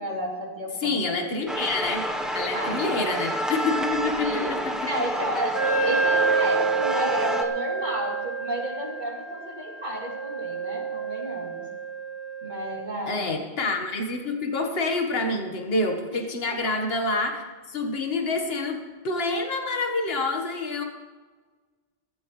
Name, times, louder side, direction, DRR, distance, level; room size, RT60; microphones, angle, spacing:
voice 1, 0.0-1.1 2.5-3.3 4.2-4.5 4.8-11.6 12.4-13.3 16.1-16.2, right 1 dB, 45° right, -3 dB, 3.3 m, -32 dB
voice 2, 0.8-2.1 2.3-4.7 13.1-18.8 19.0-20.8, left 3 dB, 65° left, 3 dB, 1.7 m, -27 dB
sound 1, 1.5-7.4, equal, ahead, 1.0 m, -29 dB
Wind instrument woodwind instrument, 5.5-12.9, right 4 dB, 90° right, 1.8 m, -28 dB
18.5 x 15.5 x 3.2 m, 1.4 s
omnidirectional pair, 1.1 m